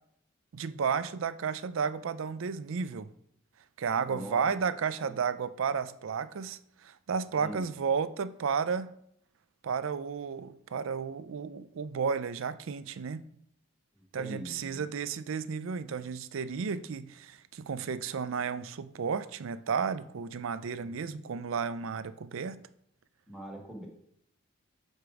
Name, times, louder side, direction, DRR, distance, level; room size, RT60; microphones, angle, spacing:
voice 1, 0.5-3.1 3.8-8.9 9.6-13.2 14.1-22.6, right 6 dB, 70° right, 0.4 m, -33 dB
voice 2, 4.1-4.5 5.0-5.2 7.4-7.7 13.9-14.8 20.8-20.9 23.3-23.9, equal, 5° right, 1.5 m, -43 dB
6.9 x 4.4 x 4.8 m
head